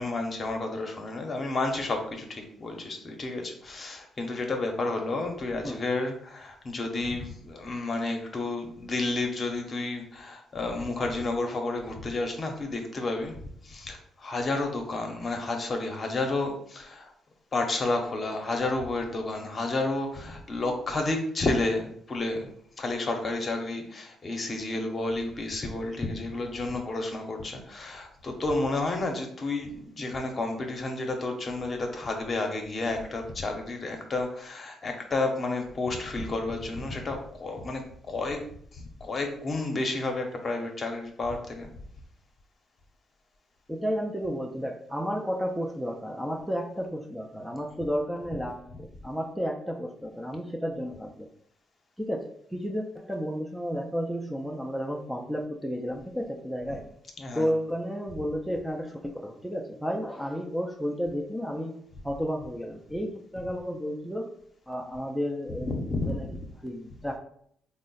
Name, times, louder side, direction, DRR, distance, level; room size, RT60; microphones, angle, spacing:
voice 1, 0.0-13.4 13.6-17.1 17.5-22.5 22.8-37.8 38.1-38.4 38.7-41.7 57.2-57.5 65.7-66.2, left 2 dB, 40° left, 3 dB, 0.8 m, -31 dB
voice 2, 43.7-51.3 52.0-56.8 57.3-64.3 64.7-65.7 66.0-66.2 66.6-67.2, equal, ahead, 1 dB, 0.4 m, -32 dB
3.6 x 2.1 x 3.9 m, 0.64 s
cardioid pair, 90°, 0 cm